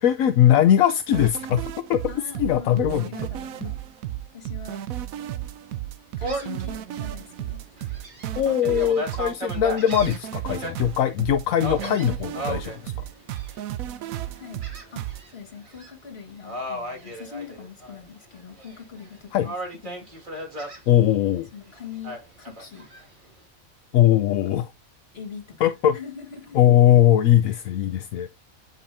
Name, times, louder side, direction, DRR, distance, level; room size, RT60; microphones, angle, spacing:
voice 1, 0.0-2.0 2.4-3.1 3.6-3.7 8.3-12.9 19.3-19.5 20.9-21.5 23.9-24.7 25.6-25.9 26.5-28.3, left 11 dB, 75° left, 1.0 m, -20 dB
voice 2, 0.5-1.0 2.1-3.8 4.3-4.8 6.2-7.6 14.3-14.6 14.9-19.6 19.8-20.1 21.5-22.9 25.1-25.6 25.9-26.6 27.5-27.6, left 6 dB, 45° left, 2.1 m, -42 dB
sound 1, 1.1-15.2, right 12 dB, 80° right, 1.1 m, -33 dB
Gull seagull, 6.2-6.6 7.1-7.2 7.8-10.7 11.6-12.8 13.3-13.8 14.6-15.3 15.6-15.9 16.4-18.0 18.3-19.1 19.4-20.8 22.0-23.0, right 1 dB, 35° right, 2.3 m, -35 dB
8.7 x 5.3 x 2.7 m
omnidirectional pair, 1.4 m